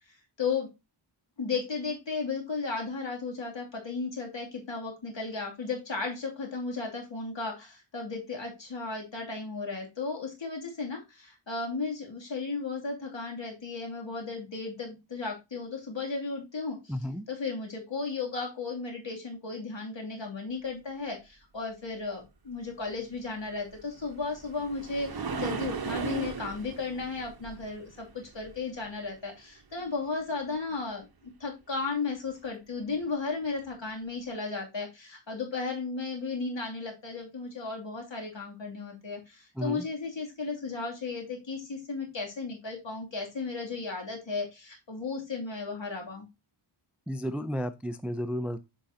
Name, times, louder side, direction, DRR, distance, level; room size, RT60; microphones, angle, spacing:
voice 1, 0.4-0.7 1.4-16.9 17.3-31.1 31.4-46.3, left 4 dB, 60° left, 0 dB, 2.8 m, -35 dB
voice 2, 16.9-17.2 39.6-39.9 47.1-48.6, equal, 5° right, 11 dB, 0.4 m, -32 dB
sound 1, 23.7-29.0 32.9-33.0 33.6-33.7, right 5 dB, 45° right, 1.0 m, -37 dB
8.8 x 5.2 x 2.8 m, 0.25 s
wide cardioid pair, 75°, 50 cm